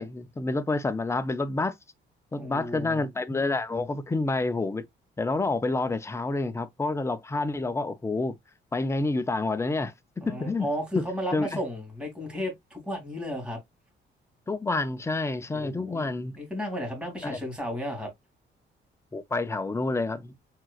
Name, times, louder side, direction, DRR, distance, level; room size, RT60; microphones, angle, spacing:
voice 1, 0.0-1.7 2.3-4.8 5.2-8.3 8.7-9.9 10.2-10.7 11.3-11.6 14.5-16.4 17.2-17.4 19.1-20.5, left 3 dB, 15° left, 0.5 m, -28 dB
voice 2, 2.4-3.1 10.2-13.6 15.5-16.1 16.4-18.1, equal, 5° right, 2.6 m, -33 dB
4.5 x 3.7 x 2.4 m
cardioid pair, 90°, 20 cm